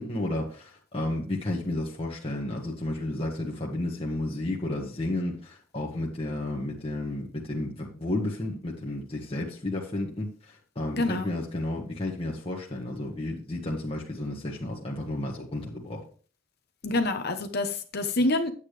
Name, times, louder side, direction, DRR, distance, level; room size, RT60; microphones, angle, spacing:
voice 1, 0.0-16.0, left 1 dB, 30° left, -2 dB, 1.5 m, -32 dB
voice 2, 10.9-11.3 16.8-18.5, left 2 dB, 50° left, 7 dB, 1.0 m, -27 dB
9.6 x 8.7 x 3.4 m, 0.39 s
head